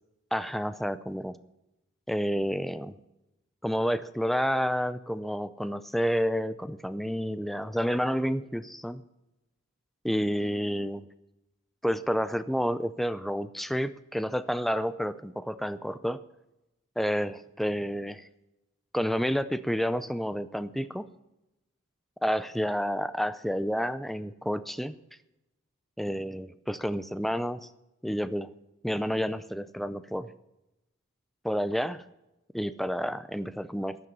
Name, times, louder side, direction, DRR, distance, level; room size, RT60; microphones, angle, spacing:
voice 1, 0.3-1.4 2.1-3.0 3.6-9.0 10.0-11.0 11.8-16.2 17.0-18.3 18.9-21.1 22.2-25.0 26.0-27.7 28.0-28.5 28.8-30.3 31.4-32.0 32.5-34.0, equal, ahead, 13 dB, 0.5 m, -30 dB
14.5 x 10.5 x 5.4 m, 0.94 s
head